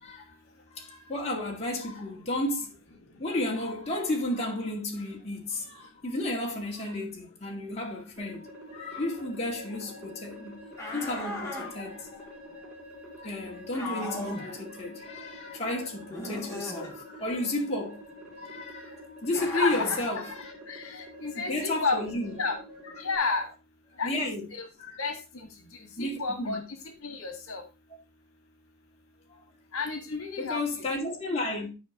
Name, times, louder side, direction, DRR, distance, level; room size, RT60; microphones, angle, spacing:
voice 1, 0.7-2.8 3.2-8.4 8.7-10.6 10.8-12.3 13.2-18.0 18.4-20.5 21.4-22.4 24.0-24.4 24.8-25.0 26.0-26.6 30.4-31.7, left 1 dB, 30° left, 2.0 m, -32 dB
sound 1, 8.2-23.2, equal, 5° right, 2.8 m, -47 dB
sound 2, 10.8-11.7 13.7-14.5 16.1-16.9 19.3-20.1, left 1 dB, 15° left, 2.6 m, -37 dB
voice 2, 19.4-19.8 20.1-20.2 20.7-22.0 22.4-22.6 23.0-23.5 24.0-24.1 24.5-24.6 25.0-25.5 26.0-26.6 27.0-27.6 29.7-30.9, left 4 dB, 75° left, 1.8 m, -31 dB
11.0 x 4.9 x 3.8 m
head